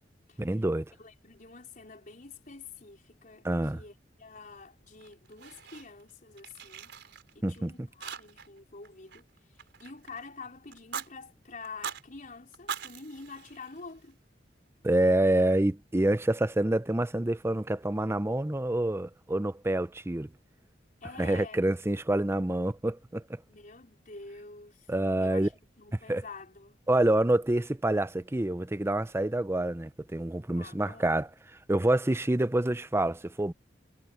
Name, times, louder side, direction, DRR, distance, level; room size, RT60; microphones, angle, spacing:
voice 1, 0.4-0.9 3.4-3.8 7.4-7.9 14.8-20.3 21.2-23.2 24.9-25.5 25.9-26.2 26.9-31.3 31.7-33.5, right 1 dB, 15° right, 0.6 m, -27 dB
voice 2, 1.0-3.5 3.7-6.9 7.3-9.3 9.8-14.2 21.0-21.7 23.5-24.9 25.2-25.5 25.8-26.8 30.5-31.2, left 4 dB, 45° left, 4.4 m, -47 dB
Fire, 5.0-6.1 6.4-7.6 8.0-8.6 8.8-10.2 10.7-11.1 11.6-12.0 12.5-14.1, right 7 dB, 65° right, 5.3 m, -41 dB
head